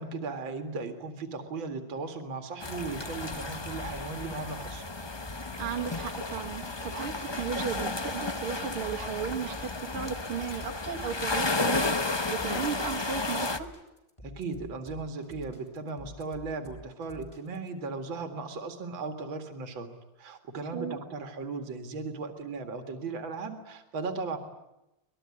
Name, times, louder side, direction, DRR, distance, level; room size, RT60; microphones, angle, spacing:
voice 1, 0.0-4.8 14.2-19.9 20.2-24.4, right 4 dB, 60° right, 7 dB, 2.8 m, -37 dB
sound 1, 2.6-13.6, left 2 dB, 35° left, 0.4 m, -33 dB
sound 2, 3.8-17.7, left 1 dB, 15° left, 4.0 m, -49 dB
voice 2, 5.6-11.9 12.3-13.7 20.7-21.0, right 7 dB, 80° right, 1 dB, 2.9 m, -35 dB
Thump thud, 7.7-11.8 12.1-13.0, left 9 dB, 70° left, 2.0 m, -51 dB
24.5 x 20.5 x 9.9 m, 0.89 s
omnidirectional pair, 2.4 m